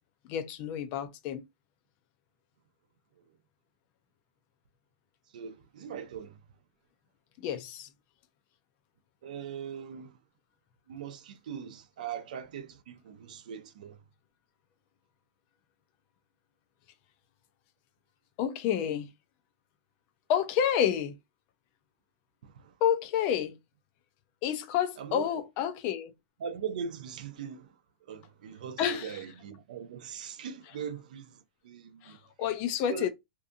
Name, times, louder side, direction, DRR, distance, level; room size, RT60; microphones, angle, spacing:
voice 1, 0.3-1.4 7.4-7.9 18.4-19.1 20.3-21.2 22.8-23.6 24.4-26.1 28.8-29.2 32.0-33.1, left 9 dB, 35° left, 0.4 m, -29 dB
voice 2, 5.3-6.4 9.2-10.2 10.9-14.0 22.4-22.8 25.0-25.3 26.4-32.2 32.9-33.1, right 7 dB, 65° right, 0.5 m, -40 dB
2.7 x 2.5 x 2.4 m
supercardioid pair, 160°, 5 cm